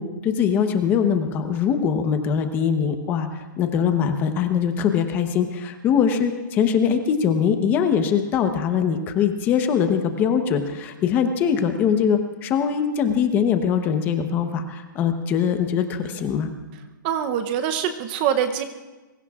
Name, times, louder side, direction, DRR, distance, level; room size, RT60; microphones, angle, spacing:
voice 1, 0.0-16.5, left 7 dB, 15° left, 7 dB, 1.0 m, -22 dB
voice 2, 17.0-18.6, right 9 dB, 25° right, 8 dB, 0.8 m, -24 dB
25.5 x 23.0 x 2.5 m, 1.2 s
hypercardioid pair, 165°, 11 cm